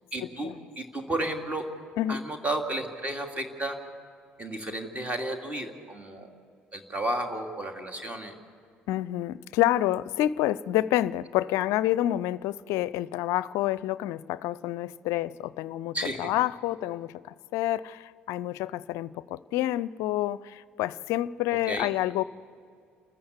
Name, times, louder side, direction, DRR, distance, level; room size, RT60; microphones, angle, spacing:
voice 1, 0.1-1.7 2.1-3.8 4.4-6.3 6.7-8.3 15.9-16.3 21.7-21.9, right 1 dB, 25° right, 5 dB, 2.7 m, -32 dB
voice 2, 8.9-17.2 17.5-22.2, left 14 dB, 60° left, 19 dB, 0.5 m, -28 dB
28.5 x 14.0 x 8.3 m, 2.3 s
figure-of-eight pair, 50°, 6 cm